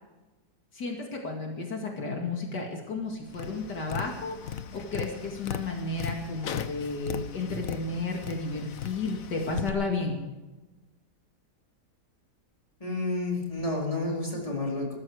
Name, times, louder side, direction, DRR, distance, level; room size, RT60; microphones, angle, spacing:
voice 1, 0.7-10.2, left 3 dB, 75° left, 1 dB, 2.9 m, -32 dB
Tap, 3.3-9.7, left 8 dB, 60° left, 1.2 m, -37 dB
voice 2, 12.8-15.0, left 2 dB, 20° left, -2 dB, 4.6 m, -30 dB
20.0 x 14.0 x 4.9 m, 1.1 s
omnidirectional pair, 1.8 m